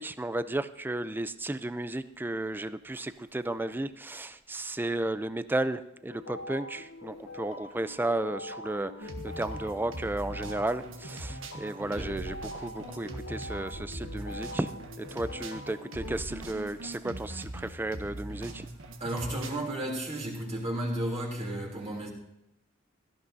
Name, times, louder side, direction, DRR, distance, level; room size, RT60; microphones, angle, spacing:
voice 1, 0.0-14.7 15.0-18.7, right 1 dB, 10° right, 0.4 m, -33 dB
sound 1, 6.1-16.2, left 1 dB, 75° left, 0.7 m, -44 dB
sound 2, 9.0-19.5, right 1 dB, 75° right, 1.4 m, -41 dB
voice 2, 11.8-12.2 19.0-22.1, right 1 dB, 35° right, 2.9 m, -33 dB
17.0 x 13.5 x 2.7 m
head